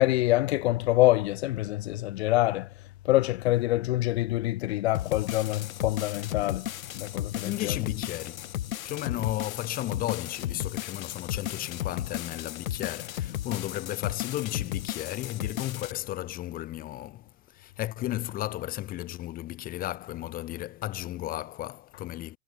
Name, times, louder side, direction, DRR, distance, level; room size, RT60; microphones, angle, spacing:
voice 1, 0.0-2.7 3.0-6.7 6.9-7.8, left 17 dB, 50° left, 0.7 m, -25 dB
sound 1, 4.9-15.9, left 12 dB, 75° left, 0.9 m, -35 dB
voice 2, 7.3-8.5 8.8-22.4, left 15 dB, 20° left, 0.9 m, -34 dB
hypercardioid pair, 130°, 41 cm